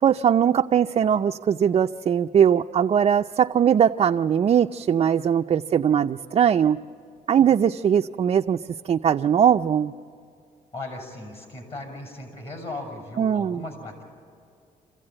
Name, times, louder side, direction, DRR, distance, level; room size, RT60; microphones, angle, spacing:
voice 1, 0.0-6.8 7.3-8.6 8.9-9.9 13.2-13.6, right 8 dB, 45° right, 4 dB, 0.5 m, -20 dB
voice 2, 10.7-14.1, left 2 dB, 45° left, 2 dB, 6.4 m, -37 dB
27.0 x 15.5 x 8.8 m, 2.4 s
cardioid pair, 115°, 14 cm